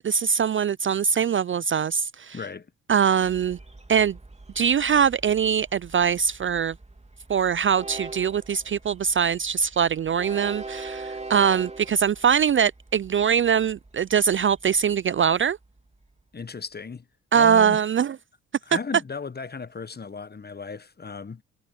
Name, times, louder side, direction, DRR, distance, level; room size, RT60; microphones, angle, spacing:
voice 1, 0.0-2.4 2.9-3.6 3.9-4.2 4.6-6.7 7.3-15.6 17.3-18.2, right 7 dB, 35° right, 0.5 m, -22 dB
voice 2, 2.3-2.7 16.3-17.1 17.3-17.8 18.7-21.4, left 5 dB, 25° left, 1.3 m, -35 dB
Train, 3.2-16.2, right 3 dB, 20° right, 3.5 m, -43 dB
hypercardioid pair, 45°, 36 cm